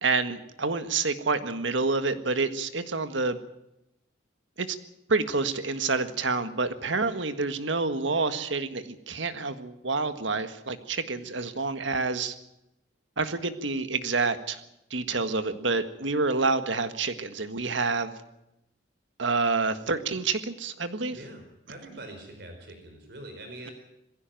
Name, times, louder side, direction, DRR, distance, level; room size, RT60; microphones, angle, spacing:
voice 1, 0.0-3.4 4.6-4.7 5.1-12.3 13.2-14.6 14.9-18.1 19.2-21.2, right 3 dB, 80° right, 10 dB, 1.7 m, -28 dB
voice 2, 21.1-23.7, right 1 dB, 55° right, 4 dB, 4.9 m, -44 dB
21.5 x 16.0 x 9.1 m, 0.87 s
head